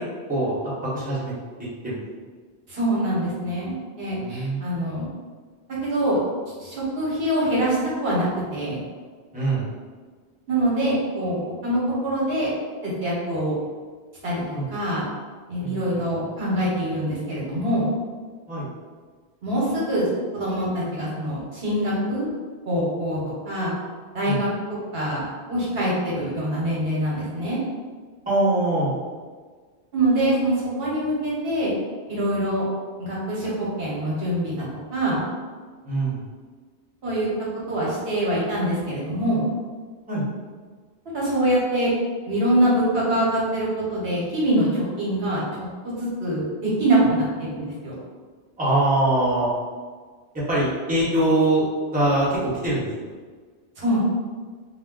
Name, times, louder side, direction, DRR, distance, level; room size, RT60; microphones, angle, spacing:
voice 1, 0.9-1.3 1.8-2.2 4.2-4.7 9.3-9.7 14.5-14.6 15.6-16.0 18.5-18.7 23.1-23.3 24.3-24.4 28.3-28.9 35.8-36.2 40.1-40.3 48.6-49.5 50.5-51.6 51.9-53.1, right 2 dB, 10° right, -9 dB, 0.7 m, -23 dB
voice 2, 2.7-5.1 5.8-6.2 6.6-8.8 10.5-12.5 12.8-13.5 14.2-15.0 15.5-17.9 19.4-20.1 20.3-22.3 22.7-23.2 23.4-23.7 24.1-24.5 24.9-27.6 29.9-31.7 32.1-32.6 33.0-34.6 34.9-35.2 37.0-37.3 37.7-39.5 41.1-41.9 42.3-45.4 45.8-48.0 53.8-54.0, right 1 dB, 65° right, -6 dB, 1.0 m, -24 dB
2.4 x 2.0 x 3.5 m, 1.5 s
omnidirectional pair, 1.1 m